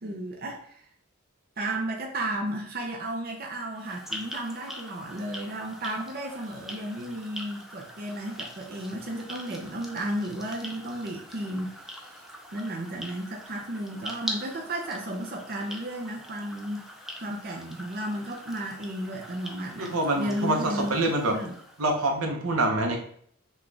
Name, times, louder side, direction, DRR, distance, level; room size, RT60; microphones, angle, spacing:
voice 1, 0.0-0.9 1.6-12.2 12.5-16.9 17.2-21.0 21.3-21.5, right 1 dB, 45° right, 0 dB, 0.6 m, -33 dB
sound 1, 3.7-22.2, equal, ahead, 0.4 m, -43 dB
voice 2, 19.8-21.4 21.8-23.0, right 2 dB, 80° right, 2 dB, 0.9 m, -26 dB
6.0 x 2.4 x 3.3 m, 0.62 s
head